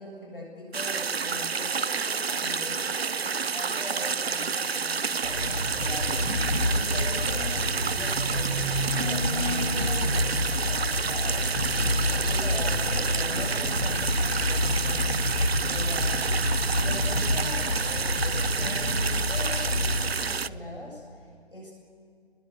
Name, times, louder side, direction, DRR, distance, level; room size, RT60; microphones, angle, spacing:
voice 1, 0.0-6.5 6.7-15.2 15.6-16.4 16.7-21.7, left 1 dB, 55° left, -2 dB, 7.4 m, -41 dB
sound 1, 0.7-20.5, right 5 dB, 65° right, 0.5 m, -29 dB
sound 2, 5.2-20.0, left 1 dB, 20° left, 5.3 m, -28 dB
28.5 x 20.5 x 8.0 m, 2.1 s
figure-of-eight pair, 180°, 33 cm